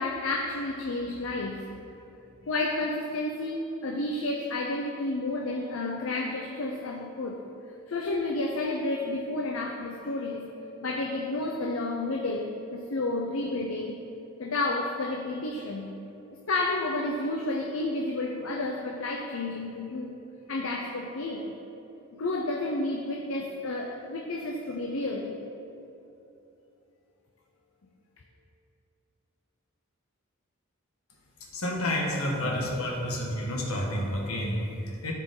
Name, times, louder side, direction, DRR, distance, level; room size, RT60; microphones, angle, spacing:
voice 1, 0.0-1.7 2.4-7.4 7.9-10.5 10.8-14.0 14.4-15.9 16.5-20.2 20.5-21.5 22.1-25.3, left 2 dB, 70° left, 1 dB, 0.7 m, -31 dB
voice 2, 31.5-35.1, left 1 dB, 90° left, -1 dB, 1.5 m, -30 dB
14.0 x 5.0 x 3.8 m, 2.8 s
head